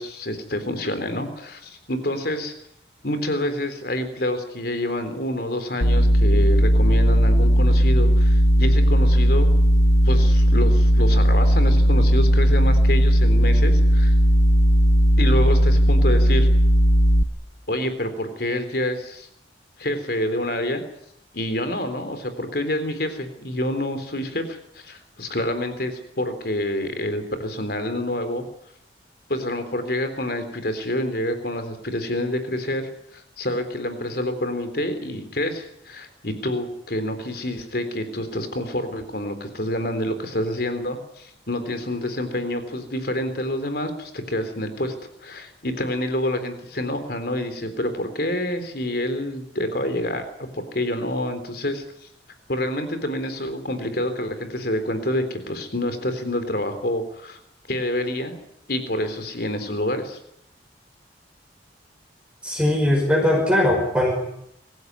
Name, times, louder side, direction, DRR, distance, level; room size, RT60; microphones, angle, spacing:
voice 1, 0.0-2.5 3.0-9.5 10.0-14.1 15.2-16.5 17.7-19.3 19.8-20.8 21.3-28.4 29.3-44.9 45.2-50.2 50.6-51.8 52.5-57.4 57.7-58.4 58.7-60.2, left 1 dB, 60° left, 9 dB, 3.7 m, -27 dB
sound 1, 5.8-17.2, equal, 85° left, 1.6 m, -16 dB
voice 2, 62.4-64.1, left 1 dB, 5° right, 0 dB, 5.4 m, -20 dB
24.5 x 15.5 x 9.6 m, 0.76 s
head